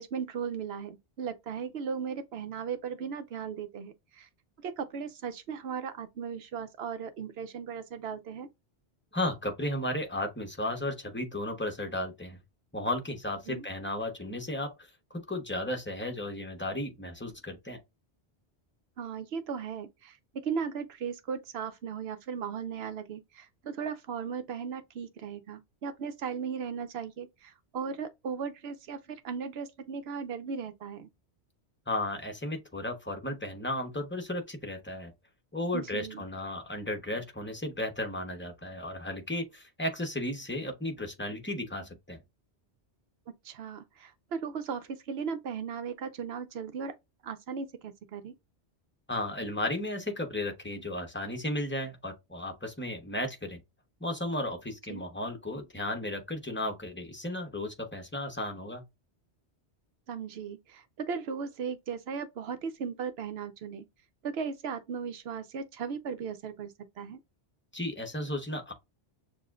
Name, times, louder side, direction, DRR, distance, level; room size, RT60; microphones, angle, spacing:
voice 1, 0.0-4.3 4.6-8.5 13.5-13.6 19.0-31.1 35.7-36.2 43.4-46.9 47.2-48.3 54.9-55.0 60.1-63.9 64.2-67.2, right 6 dB, 70° right, 0.8 m, -37 dB
voice 2, 9.1-12.4 12.7-14.9 15.1-17.8 31.9-35.1 35.5-42.2 49.1-53.6 54.0-58.8 67.7-68.7, left 1 dB, 10° left, 0.9 m, -34 dB
6.7 x 2.4 x 2.4 m
omnidirectional pair, 1.1 m